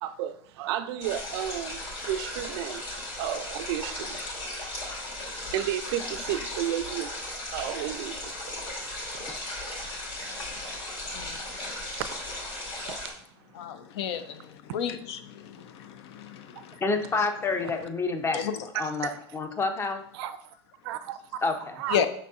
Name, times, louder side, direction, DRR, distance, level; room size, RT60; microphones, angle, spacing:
voice 1, 0.0-4.3 5.5-8.6 12.1-12.2 12.8-13.1 16.6-16.7 18.7-19.2 20.1-20.4 20.8-21.4 21.8-22.1, right 11 dB, 65° right, 0.4 m, -33 dB
sound 1, 1.0-13.1, left 1 dB, 40° left, 2.0 m, -36 dB
voice 2, 10.2-10.7 11.1-11.8 13.5-16.8 18.3-18.7 21.9-22.1, left 8 dB, 70° left, 0.5 m, -33 dB
voice 3, 16.8-18.4 18.7-20.0 21.4-21.8, left 3 dB, 15° left, 0.6 m, -28 dB
5.4 x 4.1 x 2.4 m
supercardioid pair, 115°, 14 cm